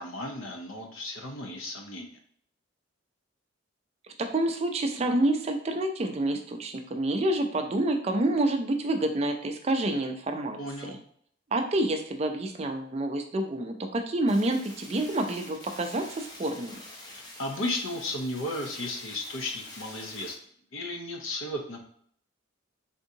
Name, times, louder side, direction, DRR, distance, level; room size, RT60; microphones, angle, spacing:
voice 1, 0.0-2.1 10.6-10.9 17.0-20.4 20.7-21.8, left 1 dB, 75° left, 3 dB, 0.6 m, -34 dB
voice 2, 4.2-10.6 11.5-16.8, right 1 dB, 30° right, 5 dB, 0.3 m, -28 dB
sound 1, 14.3-20.3, left 1 dB, 20° left, 0.5 m, -46 dB
3.6 x 2.7 x 2.7 m, 0.63 s
head